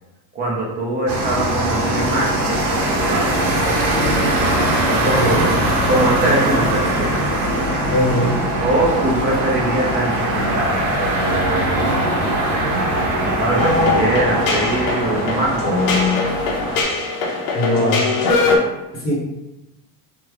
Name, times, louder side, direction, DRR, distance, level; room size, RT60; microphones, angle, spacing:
voice 1, 0.3-2.5 3.0-4.0 4.8-5.5 5.9-7.3 8.6-12.3 13.3-15.9, right 1 dB, 20° right, -2 dB, 0.4 m, -22 dB
sound 1, 1.1-16.8, right 1 dB, 70° right, 0.9 m, -21 dB
voice 2, 5.0-5.5 7.9-8.3 17.5-18.1 18.9-19.1, left 1 dB, 20° left, -6 dB, 0.7 m, -20 dB
sound 2, 13.6-18.6, left 3 dB, 80° left, 0.8 m, -20 dB
3.1 x 2.0 x 3.4 m, 0.98 s
cardioid pair, 170°, 43 cm